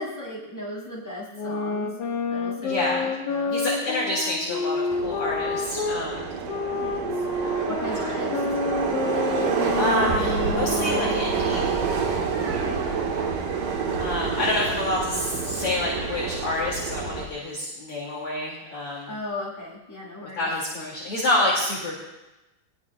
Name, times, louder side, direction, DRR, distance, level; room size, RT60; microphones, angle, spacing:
voice 1, 0.0-1.9 2.3-3.6 6.7-7.3 7.7-8.4 12.4-12.8 19.1-20.5, left 1 dB, 5° left, -5 dB, 6.6 m, -36 dB
sound 1, 1.3-6.0 6.5-11.4, left 4 dB, 60° left, 2.8 m, -29 dB
voice 2, 2.6-3.1 3.5-6.3 9.8-11.8 14.0-19.1 20.4-22.0, left 1 dB, 40° left, -4 dB, 3.1 m, -27 dB
Subway metro underground, 4.9-17.3, right 6 dB, 65° right, 3.1 m, -28 dB
22.5 x 20.5 x 2.4 m, 1.0 s
omnidirectional pair, 4.3 m